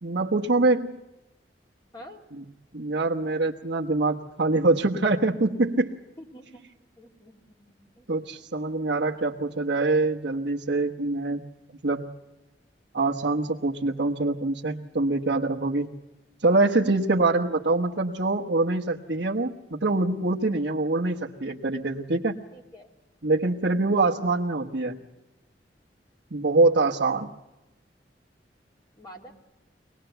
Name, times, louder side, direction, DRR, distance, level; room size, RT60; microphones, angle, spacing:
voice 1, 0.0-1.0 2.3-2.4 2.7-6.0 8.1-11.4 11.8-12.1 12.9-15.9 16.4-22.4 23.2-25.0 26.3-27.3, right 2 dB, 70° right, -2 dB, 1.3 m, -24 dB
voice 2, 6.2-8.1 17.0-17.2 22.5-22.9 23.4-23.8 29.0-29.3, equal, 25° left, 0 dB, 3.2 m, -48 dB
25.0 x 19.5 x 8.0 m, 0.99 s
head